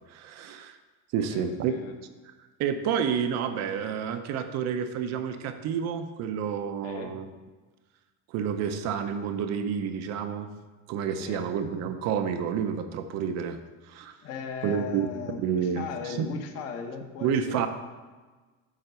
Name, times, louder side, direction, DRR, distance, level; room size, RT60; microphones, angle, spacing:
voice 1, 0.1-0.8 1.1-1.8 2.2-2.3 2.6-7.3 8.3-10.5 10.9-13.6 13.9-14.2 14.6-15.1 15.4-16.3 17.2-17.7, right 7 dB, 50° right, 8 dB, 0.6 m, -29 dB
voice 2, 1.2-2.0 6.8-7.1 11.2-11.4 14.2-17.7, left 6 dB, 45° left, 4 dB, 1.0 m, -38 dB
9.0 x 3.8 x 6.8 m, 1.3 s
cardioid pair, 155°, 34 cm